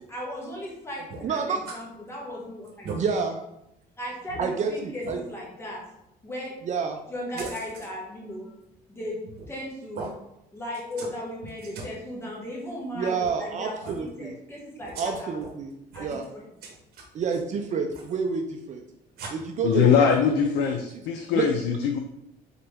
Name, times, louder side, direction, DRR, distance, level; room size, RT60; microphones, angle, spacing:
voice 1, 0.1-3.2 4.0-5.8 6.2-6.6 7.1-8.5 8.9-10.1 10.5-15.4 15.9-16.4, left 1 dB, 15° left, -4 dB, 1.5 m, -37 dB
sound 1, 1.1-1.8 2.2-2.3 2.6-3.0 3.6-3.7 4.3-4.4 5.0-5.2 7.4-7.9 9.3-9.6 9.9-10.1 10.7-11.2 11.4-12.0 13.2-13.4 13.8-14.1 14.8-15.5 15.9-16.3 16.6-17.4 17.9-18.1 19.2-19.3, right 4 dB, 65° right, 1.0 m, -39 dB
voice 2, 1.2-1.6 2.9-3.4 4.4-5.2 6.7-7.0 7.4-7.5 13.0-14.3 15.0-15.7 16.0-16.3 17.1-18.8 19.3-20.7 21.3-21.5, right 5 dB, 45° right, 4 dB, 0.5 m, -29 dB
voice 3, 19.6-22.0, left 7 dB, 85° left, 4 dB, 0.5 m, -22 dB
4.0 x 3.4 x 3.4 m, 0.82 s
cardioid pair, 110°, 17 cm